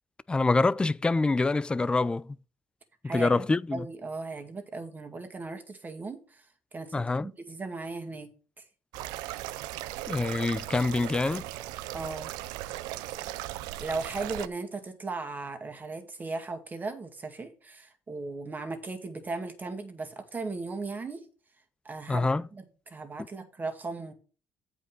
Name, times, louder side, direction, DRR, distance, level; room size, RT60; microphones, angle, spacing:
voice 1, 0.3-2.4 3.1-3.9 6.9-7.3 10.1-11.4 22.1-22.4, left 3 dB, 15° left, 0.4 m, -26 dB
voice 2, 3.0-3.5 3.7-6.5 6.7-8.3 8.6-8.7 11.9-12.3 13.8-21.2 21.8-24.1, right 3 dB, 25° right, 2.0 m, -37 dB
sound 1, 8.9-14.5, right 15 dB, 90° right, 0.5 m, -37 dB
8.5 x 5.0 x 6.0 m
cardioid pair, 90°, 7 cm